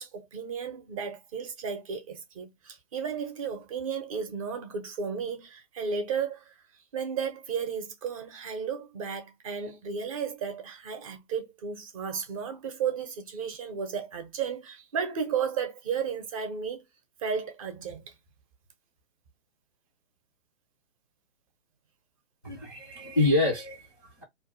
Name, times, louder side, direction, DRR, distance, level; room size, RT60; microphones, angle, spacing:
voice 1, 0.0-6.6 6.9-16.8 17.2-18.1, right 6 dB, 30° right, 0.6 m, -34 dB
voice 2, 22.4-24.2, left 2 dB, 15° left, 0.3 m, -27 dB
2.5 x 2.2 x 3.7 m
figure-of-eight pair, 135°, 38 cm